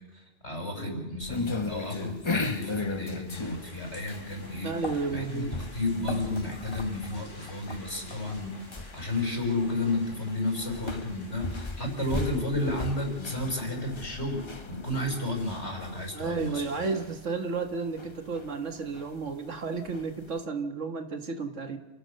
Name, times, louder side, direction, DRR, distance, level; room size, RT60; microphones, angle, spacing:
voice 1, 0.1-4.7 5.1-8.5 8.9-16.6, left 2 dB, 65° left, 2 dB, 5.8 m, -32 dB
sound 1, 1.2-20.4, left 3 dB, 25° left, 0.9 m, -38 dB
sound 2, 3.3-13.2, left 1 dB, 90° left, 4.7 m, -50 dB
voice 2, 4.6-5.5 16.1-21.8, right 4 dB, 80° right, 7 dB, 1.9 m, -32 dB
28.5 x 17.5 x 6.7 m, 1.2 s
omnidirectional pair, 1.2 m